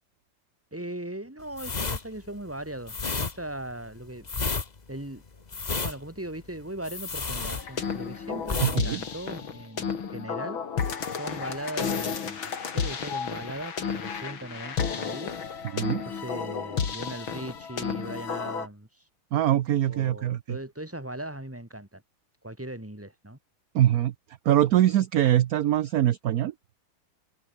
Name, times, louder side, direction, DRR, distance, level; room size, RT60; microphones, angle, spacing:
voice 1, 0.7-4.2 4.9-5.2 5.8-10.6 11.1-15.3 16.0-19.0 19.9-22.0 22.4-23.4, right 1 dB, 5° right, 2.8 m, -39 dB
sound 1, 1.5-8.1 8.4-8.8 9.1-9.3, left 4 dB, 25° left, 1.1 m, -31 dB
sound 2, 7.6-18.7, left 6 dB, 85° left, 3.1 m, -32 dB
voice 2, 8.6-9.0 15.7-16.0 19.3-20.6 23.7-24.1 24.4-26.5, right 12 dB, 65° right, 1.0 m, -23 dB
omnidirectional pair, 2.2 m